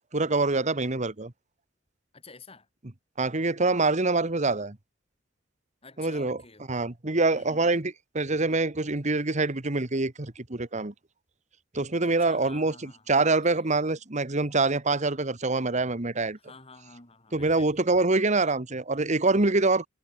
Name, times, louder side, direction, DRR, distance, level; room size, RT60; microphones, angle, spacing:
voice 1, 0.1-1.3 3.2-4.8 6.0-6.4 6.7-10.9 11.7-16.4 17.3-19.9, right 3 dB, 40° right, 1.5 m, -25 dB
voice 2, 2.1-2.7 5.8-6.9 7.3-7.7 12.0-13.8 16.4-17.9, left 3 dB, 30° left, 4.8 m, -50 dB
head